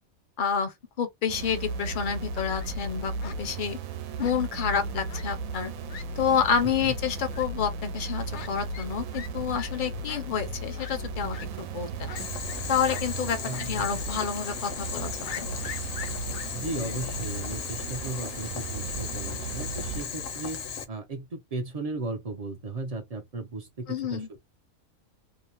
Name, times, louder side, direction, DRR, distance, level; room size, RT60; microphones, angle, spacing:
voice 1, 0.4-3.8 4.2-5.7 6.2-12.1 12.7-15.1 15.4-15.5 23.9-24.3, left 7 dB, 50° left, 0.6 m, -29 dB
sound 1, 1.3-20.0, right 3 dB, 85° right, 1.0 m, -36 dB
Fowl, 2.3-2.7 3.2-3.4 4.2-4.7 5.1-5.2 5.6-5.7 5.9-6.0 6.5-6.6 7.3-7.4 8.3-8.5 8.7-8.9 9.1-9.3 9.5-9.7 10.1-10.2 10.8-10.9 11.3-11.5 12.1-12.6 12.9-13.0 13.5-13.7 14.0-14.1 15.2-16.5, left 8 dB, 90° left, 0.4 m, -41 dB
voice 2, 6.6-6.9 13.4-13.9 16.5-24.4, right 3 dB, 50° right, 0.4 m, -36 dB
Boiling, 12.2-20.8, left 6 dB, 70° left, 1.0 m, -36 dB
2.7 x 2.0 x 2.8 m
omnidirectional pair, 1.4 m